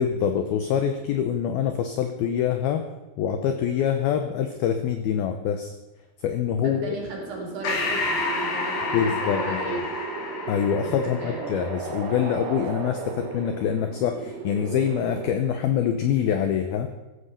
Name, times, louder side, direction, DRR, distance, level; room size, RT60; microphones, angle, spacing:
voice 1, 0.0-2.9 3.2-5.7 6.2-7.0 8.9-9.8 10.5-16.9, left 8 dB, 80° left, 7 dB, 2.2 m, -25 dB
sound 1, 6.5-15.3, right 6 dB, 70° right, 3.4 m, -36 dB
voice 2, 6.6-9.8 11.0-11.5, right 2 dB, 50° right, -2 dB, 5.3 m, -35 dB
Breathing, 7.6-12.5, left 3 dB, 65° left, 4.3 m, -30 dB
15.5 x 13.0 x 5.8 m, 1.1 s
omnidirectional pair, 5.6 m